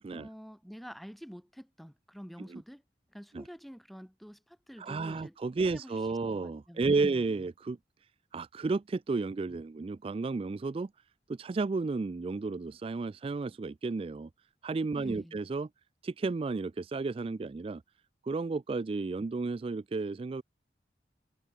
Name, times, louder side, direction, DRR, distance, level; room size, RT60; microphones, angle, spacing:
voice 1, 0.1-2.8 3.1-5.4 5.7-7.5 14.9-15.4, equal, ahead, 1.6 m, -48 dB
voice 2, 4.8-7.8 8.3-10.9 11.3-14.3 14.6-15.7 16.0-17.8 18.2-20.4, right 3 dB, 30° right, 0.3 m, -32 dB
head